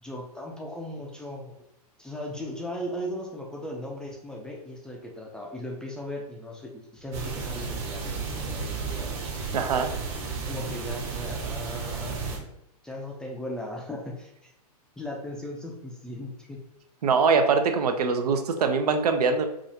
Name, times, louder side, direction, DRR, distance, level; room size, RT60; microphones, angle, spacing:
voice 1, 0.0-1.5 2.0-9.2 10.2-12.5 12.8-14.5 15.0-16.6, left 1 dB, 5° left, -1 dB, 0.4 m, -37 dB
sound 1, 7.1-12.4, right 4 dB, 45° right, 1.1 m, -33 dB
voice 2, 9.5-9.9 17.0-19.5, right 5 dB, 75° right, 6 dB, 0.6 m, -23 dB
4.9 x 2.4 x 2.7 m, 0.81 s
hypercardioid pair, 130°, 20 cm